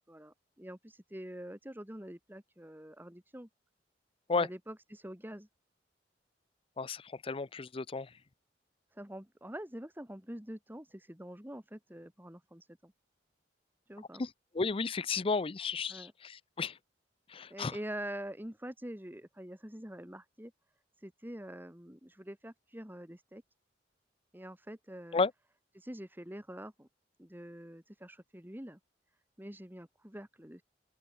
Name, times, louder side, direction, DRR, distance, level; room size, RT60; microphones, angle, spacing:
voice 1, 0.0-3.5 4.3-5.5 8.9-12.9 13.9-14.2 15.9-16.1 17.5-20.5 21.0-23.4 24.3-25.2 25.7-26.9 27.2-28.8 29.4-30.6, right 1 dB, 10° right, 2.2 m, -45 dB
voice 2, 6.8-8.1 14.2-14.3 14.6-16.1 16.6-16.7 17.3-17.7 25.1-25.3, left 4 dB, 30° left, 0.5 m, -32 dB
open air
head